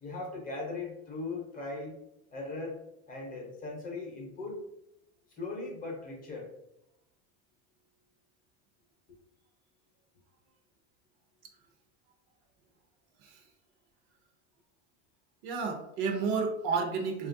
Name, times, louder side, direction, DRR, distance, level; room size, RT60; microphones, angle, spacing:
voice 1, 0.0-2.0 2.3-2.8 3.1-4.6 5.4-6.5, left 3 dB, 25° left, -1 dB, 0.7 m, -38 dB
voice 2, 15.4-17.3, right 5 dB, 65° right, 4 dB, 0.7 m, -31 dB
3.1 x 2.4 x 2.5 m, 0.82 s
supercardioid pair, 145°, 36 cm